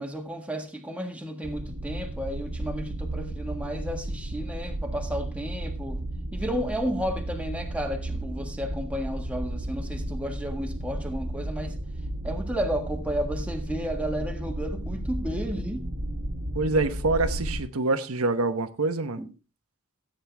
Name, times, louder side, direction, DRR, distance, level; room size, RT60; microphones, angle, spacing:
voice 1, 0.0-6.0 6.3-11.8 12.2-15.9 19.2-19.3, equal, 5° right, 1.6 m, -32 dB
sound 1, 1.4-17.6, right 1 dB, 60° right, 1.6 m, -33 dB
voice 2, 16.5-19.2, right 3 dB, 80° right, 1.1 m, -26 dB
14.5 x 8.9 x 3.4 m
head